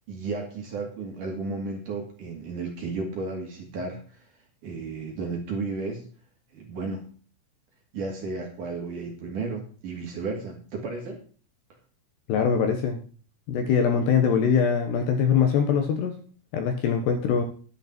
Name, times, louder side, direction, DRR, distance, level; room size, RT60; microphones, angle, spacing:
voice 1, 0.1-4.2 4.6-6.1 6.5-7.0 7.9-11.2, right 3 dB, 50° right, 1 dB, 3.2 m, -33 dB
voice 2, 12.3-13.0 13.5-16.1 16.5-17.4, left 6 dB, 70° left, 5 dB, 3.0 m, -22 dB
11.0 x 10.5 x 4.4 m, 0.40 s
omnidirectional pair, 5.8 m